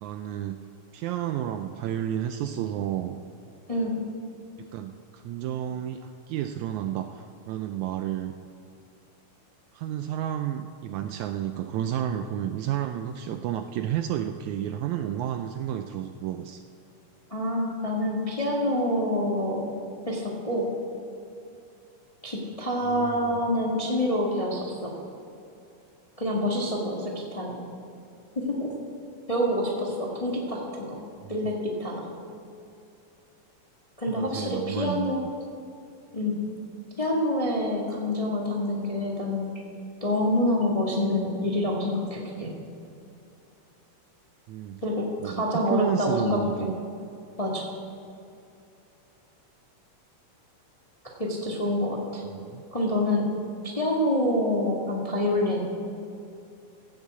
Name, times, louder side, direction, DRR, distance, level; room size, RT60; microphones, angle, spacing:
voice 1, 0.0-0.6 0.9-3.2 4.6-8.4 9.7-16.6 22.9-23.4 31.2-31.4 34.1-35.3 44.5-44.8 45.2-46.8 52.3-52.6, right 10 dB, 80° right, 8 dB, 1.7 m, -31 dB
voice 2, 17.3-19.6 20.1-20.7 22.2-24.9 26.2-27.6 28.3-28.7 29.3-31.0 31.3-31.5 31.8-32.1 34.0-35.2 36.1-36.3 37.0-39.5 40.0-42.5 44.8-46.4 47.4-47.6 51.2-52.2 52.7-53.2 53.6-55.7, left 1 dB, 25° left, -2 dB, 0.8 m, -27 dB
15.5 x 7.5 x 8.2 m, 2.6 s
omnidirectional pair, 3.7 m